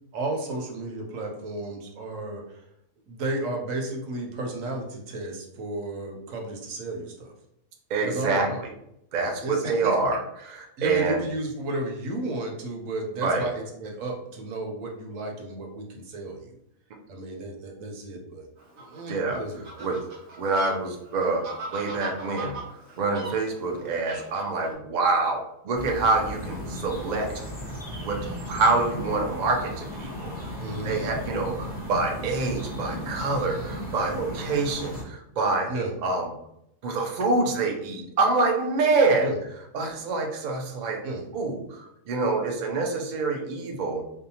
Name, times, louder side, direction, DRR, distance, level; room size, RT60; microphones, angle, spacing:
voice 1, 0.1-2.6 3.1-7.3 8.0-8.7 9.4-10.0 10.8-16.6 17.1-18.5 18.8-19.9 30.6-30.9 35.7-35.9 39.2-39.4 41.0-41.2, right 2 dB, 90° right, 1 dB, 1.0 m, -33 dB
voice 2, 7.9-8.5 9.1-11.2 13.2-13.4 19.1-19.4 19.8-20.0 20.4-22.6 23.0-27.4 28.0-30.5 30.8-36.3 36.8-39.3 39.7-41.0 41.3-44.0, right 3 dB, 65° right, 2 dB, 0.4 m, -26 dB
Fowl, 18.6-24.7, right 3 dB, 50° right, 0.8 m, -41 dB
sound 1, 25.7-35.0, equal, 10° left, 0.9 m, -35 dB
2.6 x 2.2 x 2.7 m, 0.78 s
omnidirectional pair, 1.3 m